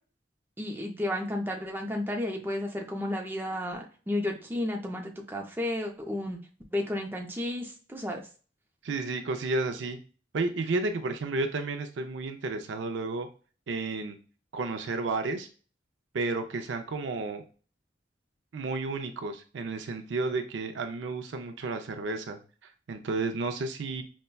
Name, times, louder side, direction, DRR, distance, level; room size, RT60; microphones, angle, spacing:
voice 1, 0.6-6.4 6.7-8.2, left 1 dB, 10° right, 1 dB, 0.5 m, -32 dB
voice 2, 8.8-10.0 10.3-13.3 13.7-14.2 14.5-15.5 16.1-17.4 18.5-24.0, right 3 dB, 75° right, 6 dB, 0.5 m, -32 dB
5.2 x 2.2 x 2.2 m, 0.38 s
head